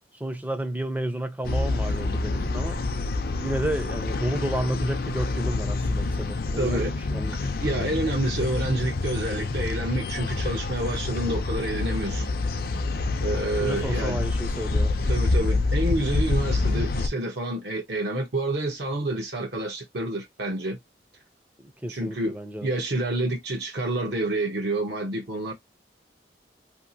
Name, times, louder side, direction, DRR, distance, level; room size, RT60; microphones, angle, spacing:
voice 1, 0.0-2.8 3.4-7.4 13.6-15.1 21.6-22.7, right 1 dB, 10° right, 0.4 m, -31 dB
sound 1, 1.4-17.1, left 3 dB, 55° left, 0.5 m, -27 dB
voice 2, 6.6-6.9 7.6-12.3 13.2-14.2 15.1-20.8 21.9-22.4 22.6-25.5, right 1 dB, 75° right, 0.9 m, -28 dB
2.8 x 2.8 x 2.6 m
head